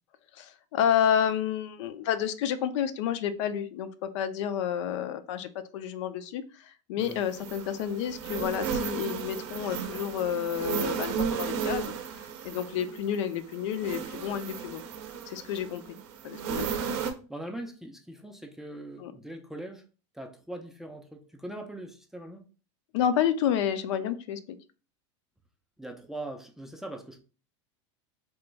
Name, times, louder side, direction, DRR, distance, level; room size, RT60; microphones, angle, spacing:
voice 1, 0.3-11.9 12.4-14.8 15.3-16.0 16.2-16.8 19.0-19.1 22.9-24.6, left 9 dB, 70° left, 12 dB, 0.4 m, -30 dB
sound 1, 7.0-17.1, right 7 dB, 60° right, 0.6 m, -34 dB
voice 2, 17.3-19.8 20.1-22.4 25.8-27.2, right 1 dB, ahead, 3 dB, 0.4 m, -41 dB
3.0 x 2.2 x 3.3 m, 0.35 s
supercardioid pair, 130°, 16 cm